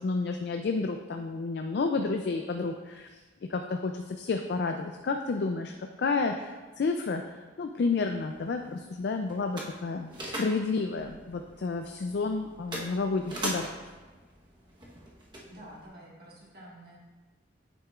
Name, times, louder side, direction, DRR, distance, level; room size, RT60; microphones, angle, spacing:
voice 1, 0.0-3.2 3.5-13.7, left 4 dB, 55° left, 5 dB, 0.3 m, -31 dB
sound 1, 7.9-15.9, right 1 dB, 25° right, 1.0 m, -42 dB
voice 2, 15.4-17.0, right 1 dB, 55° right, -5 dB, 1.7 m, -49 dB
9.0 x 6.5 x 2.4 m, 1.3 s
head